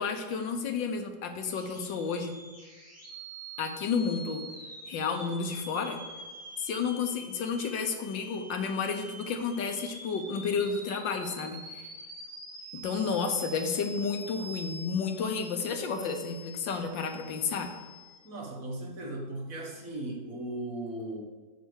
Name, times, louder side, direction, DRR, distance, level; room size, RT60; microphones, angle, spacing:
voice 1, 0.0-2.4 3.6-4.4 4.9-6.0 6.6-11.9 12.7-17.7, left 5 dB, 80° left, 5 dB, 1.7 m, -31 dB
sound 1, 1.4-18.2, equal, 10° right, 2.3 m, -46 dB
voice 2, 18.2-21.2, right 1 dB, 50° right, 0 dB, 1.7 m, -37 dB
7.0 x 6.9 x 6.4 m, 1.3 s
omnidirectional pair, 2.0 m